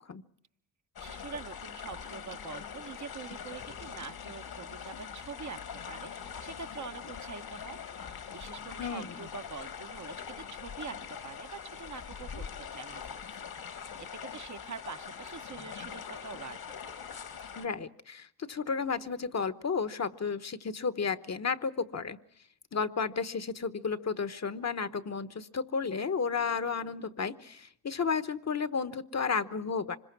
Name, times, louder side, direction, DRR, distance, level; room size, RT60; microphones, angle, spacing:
sound 1, 1.0-17.7, left 7 dB, 70° left, 2.1 m, -43 dB
voice 1, 1.0-5.6 5.9-16.8, right 5 dB, 50° right, 7 dB, 1.1 m, -45 dB
voice 2, 8.8-9.1 17.6-22.2 22.7-30.0, left 5 dB, 45° left, 12 dB, 1.1 m, -32 dB
25.5 x 21.5 x 6.0 m, 0.67 s
supercardioid pair, 55°, 38 cm